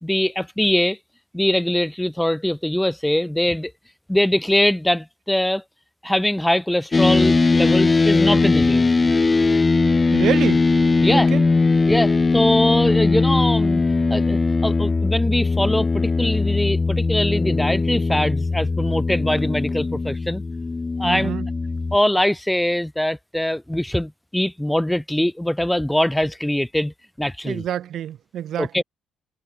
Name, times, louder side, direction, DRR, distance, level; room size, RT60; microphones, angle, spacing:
voice 1, 0.0-1.0 1.3-3.7 4.1-5.6 6.0-8.9 11.0-11.3 11.9-13.8 14.1-20.4 21.0-21.3 21.9-27.6 28.6-28.8, left 1 dB, 5° left, 3.5 m, -22 dB
sound 1, 6.9-22.0, left 3 dB, 25° left, 0.6 m, -19 dB
voice 2, 10.1-10.7 11.1-11.5 21.0-21.5 27.4-28.8, right 10 dB, 65° right, 2.0 m, -27 dB
supercardioid pair, 70°, 0 cm